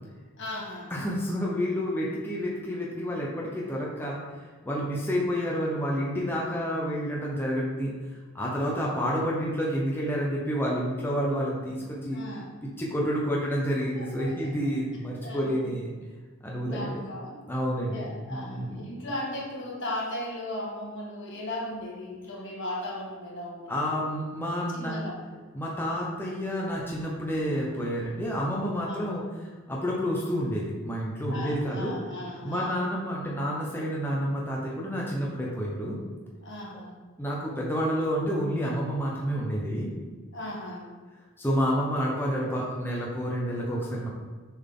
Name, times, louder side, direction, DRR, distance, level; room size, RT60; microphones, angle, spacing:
voice 1, 0.4-0.9 12.1-12.5 13.9-14.5 15.2-15.7 16.4-17.4 17.8-23.7 24.7-25.5 28.8-29.1 31.3-32.8 36.4-37.0 40.3-40.9, left 1 dB, 60° left, -3 dB, 1.6 m, -37 dB
voice 2, 0.9-4.2 4.6-7.9 8.3-12.2 12.8-15.9 16.4-17.0 17.5-18.0 18.3-18.9 23.7-24.9 25.5-31.9 32.4-36.0 37.2-39.9 41.4-44.1, equal, 10° left, -4 dB, 0.7 m, -29 dB
7.0 x 3.9 x 3.7 m, 1.4 s
head